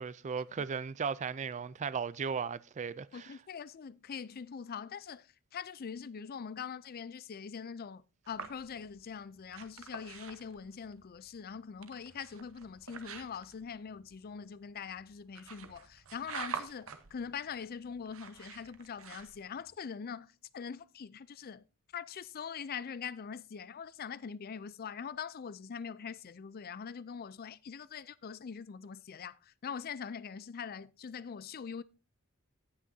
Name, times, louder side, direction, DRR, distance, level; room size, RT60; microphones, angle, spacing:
voice 1, 0.0-3.4, right 6 dB, 35° right, 0.4 m, -36 dB
voice 2, 3.1-21.6 21.9-31.8, left 6 dB, 45° left, 0.4 m, -43 dB
sound 1, 8.3-19.7, right 6 dB, 70° right, 1.1 m, -48 dB
17.5 x 6.1 x 2.7 m
head